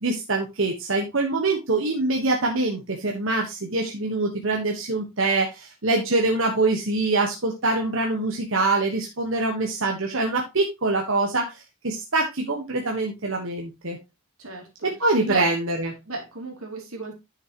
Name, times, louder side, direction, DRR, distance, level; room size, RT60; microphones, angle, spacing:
voice 1, 0.0-14.0 14.8-15.9, right 2 dB, 60° right, 1 dB, 1.3 m, -24 dB
voice 2, 14.4-14.9 15.2-15.5 16.0-17.1, right 3 dB, 80° right, 1 dB, 3.1 m, -34 dB
9.9 x 6.5 x 3.0 m, 0.24 s
head